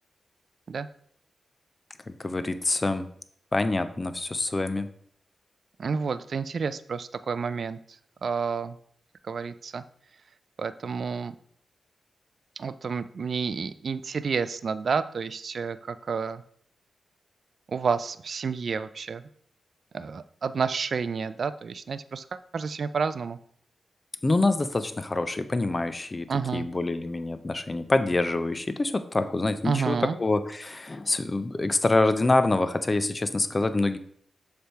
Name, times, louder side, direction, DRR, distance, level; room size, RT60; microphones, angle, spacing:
voice 1, 2.1-3.1 3.5-4.9 24.2-26.3 26.5-34.0, left 2 dB, 35° left, 11 dB, 0.6 m, -26 dB
voice 2, 5.8-7.8 8.2-8.8 9.2-9.8 10.6-11.4 12.6-16.4 17.7-19.3 19.9-23.4 26.3-26.7 29.6-30.2, right 5 dB, 65° right, 14 dB, 0.3 m, -30 dB
6.7 x 3.4 x 4.5 m, 0.63 s
cardioid pair, 55°, 0 cm